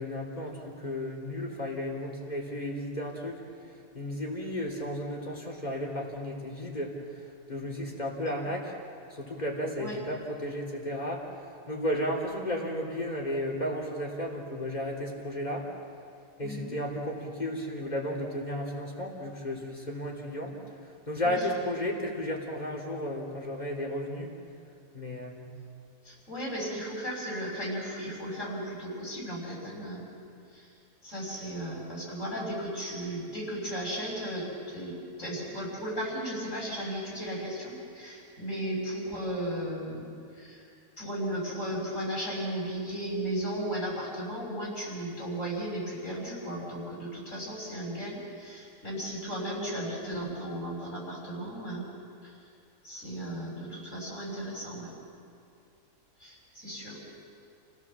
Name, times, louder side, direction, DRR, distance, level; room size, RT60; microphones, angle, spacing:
voice 1, 0.0-3.4 3.9-8.7 9.1-15.7 16.4-20.5 21.1-24.3 24.9-25.5, left 1 dB, 25° left, -2 dB, 3.5 m, -33 dB
voice 2, 16.4-16.7 21.2-21.5 26.0-30.1 30.5-30.7 31.0-40.6 41.0-51.9 52.2-52.4 52.8-54.9 56.2-57.0, right 1 dB, 50° left, -3 dB, 6.6 m, -35 dB
29.5 x 16.5 x 7.3 m, 2.4 s
omnidirectional pair, 1.6 m